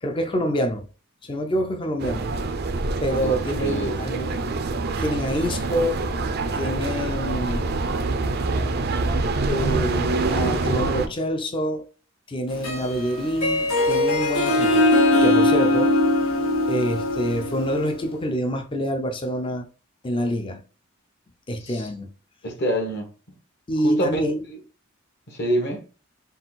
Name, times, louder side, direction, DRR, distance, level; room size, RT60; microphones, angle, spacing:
voice 1, 0.0-0.9 1.2-2.3 3.0-4.3 5.0-6.0 6.5-7.6 9.5-11.8 12.3-14.9 15.2-15.9 16.7-19.7 20.0-20.6 21.5-22.1 23.7-24.4, equal, 25° left, 0.5 m, -26 dB
sound 1, 2.0-11.1, right 3 dB, 50° right, 0.5 m, -25 dB
voice 2, 3.6-3.9 21.6-21.8 22.4-23.1 23.8-24.2 25.3-25.9, right 1 dB, 55° left, 1.3 m, -26 dB
Harp, 12.5-18.0, left 2 dB, 85° left, 1.3 m, -21 dB
3.8 x 2.4 x 4.0 m
head